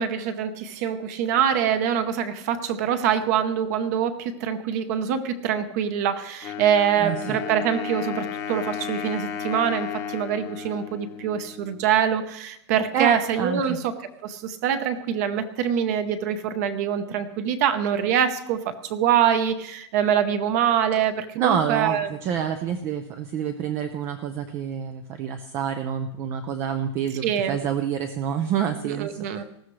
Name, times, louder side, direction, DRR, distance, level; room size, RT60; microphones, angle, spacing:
voice 1, 0.0-13.9 14.2-22.1 27.2-27.6 28.8-29.4, right 8 dB, 35° right, 10 dB, 0.8 m, -24 dB
Wind instrument woodwind instrument, 6.4-12.1, left 8 dB, 20° left, 1.0 m, -34 dB
voice 2, 7.0-7.4 12.9-13.8 21.4-29.4, right 8 dB, 20° right, 8 dB, 0.4 m, -27 dB
19.5 x 14.0 x 3.2 m, 0.79 s
supercardioid pair, 170°, 15 cm